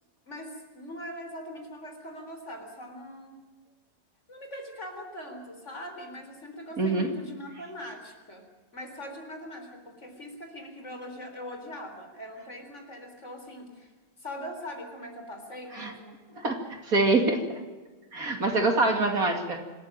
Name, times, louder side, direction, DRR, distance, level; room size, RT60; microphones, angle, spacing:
voice 1, 0.3-3.4 4.3-8.4 8.7-13.9 14.2-16.2, left 1 dB, 40° left, 5 dB, 4.3 m, -41 dB
voice 2, 6.8-7.1 15.7-15.9 16.4-17.6 18.1-19.6, right 2 dB, 50° right, 5 dB, 2.9 m, -25 dB
26.0 x 14.0 x 9.0 m, 1.3 s
omnidirectional pair, 1.9 m